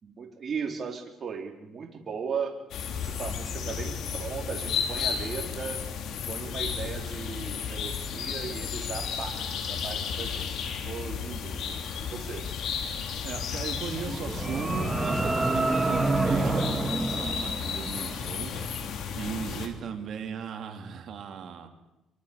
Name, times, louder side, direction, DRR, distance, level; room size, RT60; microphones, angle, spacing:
voice 1, 0.0-2.5 3.0-5.8 6.3-12.5, right 6 dB, 45° right, 2 dB, 4.0 m, -37 dB
sound 1, 2.7-19.7, left 6 dB, 80° left, 3.4 m, -33 dB
voice 2, 13.2-18.5 19.2-21.7, right 7 dB, 65° right, 4 dB, 3.6 m, -37 dB
sound 2, 13.9-18.2, right 2 dB, 20° right, 2.0 m, -28 dB
24.5 x 23.5 x 7.0 m, 0.94 s
cardioid pair, 90°, 0 cm